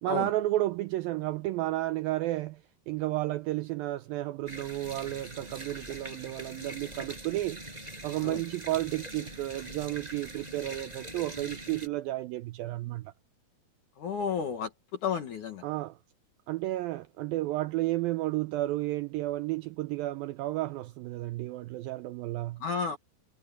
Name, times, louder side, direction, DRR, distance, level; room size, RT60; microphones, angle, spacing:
voice 1, 0.0-7.6 8.0-13.1 15.6-16.0 16.5-22.6, right 16 dB, 85° right, 2.1 m, -32 dB
sound 1, 4.5-11.9, right 1 dB, 10° right, 5.8 m, -43 dB
voice 2, 14.0-14.7 15.0-15.6 22.6-23.0, left 6 dB, 60° left, 2.7 m, -32 dB
omnidirectional pair, 4.7 m